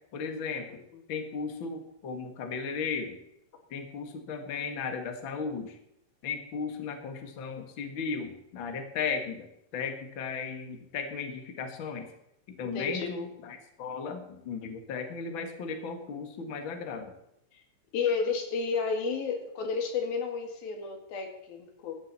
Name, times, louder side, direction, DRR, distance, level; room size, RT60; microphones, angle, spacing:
voice 1, 0.1-0.8 1.1-3.2 3.7-5.8 6.2-9.5 9.7-12.1 12.5-17.1, left 5 dB, 45° left, 6 dB, 2.0 m, -36 dB
voice 2, 12.6-13.2 17.5-17.6 17.9-22.0, left 5 dB, 85° left, 4 dB, 4.0 m, -32 dB
16.5 x 13.5 x 4.3 m, 0.81 s
omnidirectional pair, 4.1 m